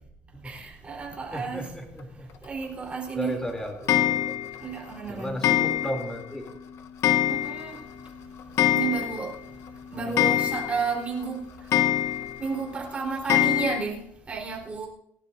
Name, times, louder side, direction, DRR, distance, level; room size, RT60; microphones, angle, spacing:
voice 1, 0.4-1.7 2.4-3.3 4.6-5.4 7.3-7.8 8.7-9.3 9.9-11.7 12.4-14.9, right 5 dB, 20° right, 4.0 m, -32 dB
voice 2, 1.3-2.3 3.1-4.3 5.1-6.4 9.9-10.2, equal, 10° left, 3.0 m, -34 dB
Clock, 3.9-4.6 5.4-6.2 6.5-6.6 7.0-7.8 8.1-8.2 8.4-9.4 9.7-9.8 10.2-11.0 11.7-12.4 13.3-13.8, left 11 dB, 55° left, 1.1 m, -24 dB
28.0 x 12.5 x 2.7 m
cardioid pair, 150°, 6 cm